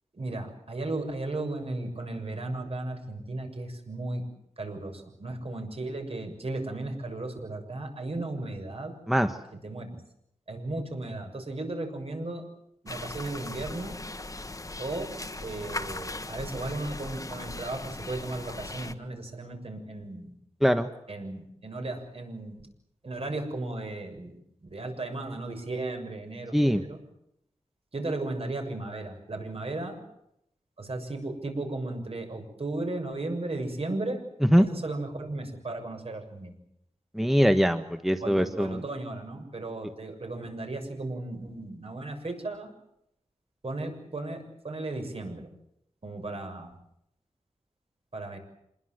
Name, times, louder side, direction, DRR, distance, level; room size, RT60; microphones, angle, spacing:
voice 1, 0.1-4.2 4.6-8.9 9.6-10.0 10.5-12.4 12.8-14.0 14.8-15.1 15.4-20.3 21.1-22.7 23.0-24.3 24.6-27.0 27.9-30.0 30.8-34.2 34.6-36.5 38.2-42.7 43.6-45.5 46.0-46.7 48.1-48.4, right 2 dB, 55° right, 5 dB, 6.8 m, -35 dB
sound 1, 12.9-18.9, left 2 dB, 30° left, 1.5 m, -38 dB
voice 2, 37.1-38.8, equal, ahead, 8 dB, 1.3 m, -22 dB
27.0 x 21.5 x 7.9 m, 0.78 s
wide cardioid pair, 90°, 12 cm